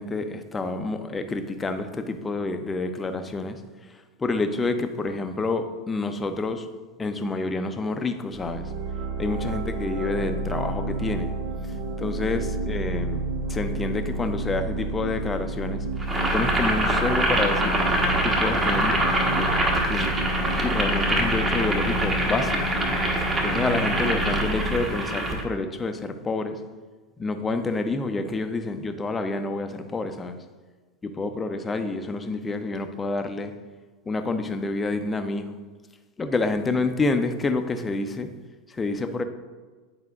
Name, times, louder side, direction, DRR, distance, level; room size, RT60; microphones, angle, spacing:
voice 1, 0.0-3.6 4.2-6.7 7.0-8.7 9.2-11.3 12.0-13.2 13.5-15.8 16.3-17.8 18.2-19.6 19.9-20.2 20.6-22.7 23.4-26.6 27.2-30.4 31.0-33.5 34.1-35.5 36.2-38.3 38.7-39.2, left 3 dB, 20° left, 8 dB, 0.6 m, -28 dB
sound 1, 8.3-24.8, right 2 dB, 60° right, 0.8 m, -30 dB
Boiling, 16.0-25.4, right 1 dB, 20° right, 1.1 m, -24 dB
9.4 x 4.8 x 2.4 m, 1.4 s
figure-of-eight pair, 80°, 0 cm